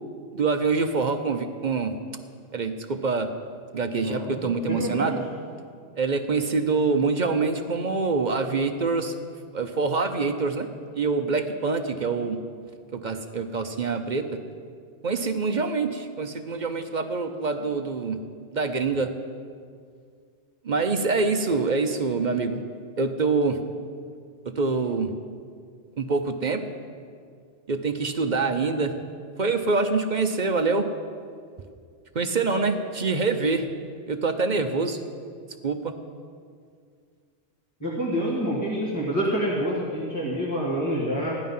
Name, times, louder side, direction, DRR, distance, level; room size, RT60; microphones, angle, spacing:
voice 1, 0.3-1.9 2.5-3.3 3.7-5.2 6.0-9.2 9.5-10.7 10.9-12.4 12.9-14.3 15.0-18.2 18.5-19.1 20.6-22.6 23.0-23.6 24.5-25.1 26.0-26.6 27.7-28.9 29.4-30.9 32.1-33.7 34.1-35.0 35.6-35.9, right 4 dB, 45° right, 7 dB, 0.8 m, -25 dB
voice 2, 3.9-5.2 37.8-41.3, equal, 15° left, -7 dB, 2.0 m, -27 dB
16.0 x 11.5 x 5.6 m, 2.2 s
omnidirectional pair, 1.2 m